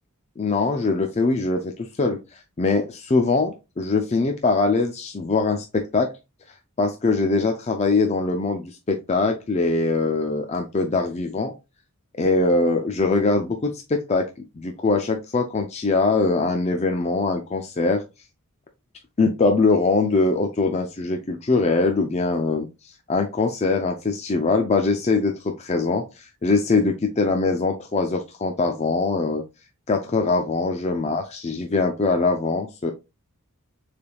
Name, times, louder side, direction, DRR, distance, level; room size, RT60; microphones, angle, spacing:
voice 1, 0.4-6.1 6.8-11.5 12.2-14.3 14.6-18.0 19.2-29.4 29.9-32.9, left 3 dB, 30° left, 4 dB, 0.4 m, -22 dB
6.8 x 3.4 x 2.3 m, 0.26 s
head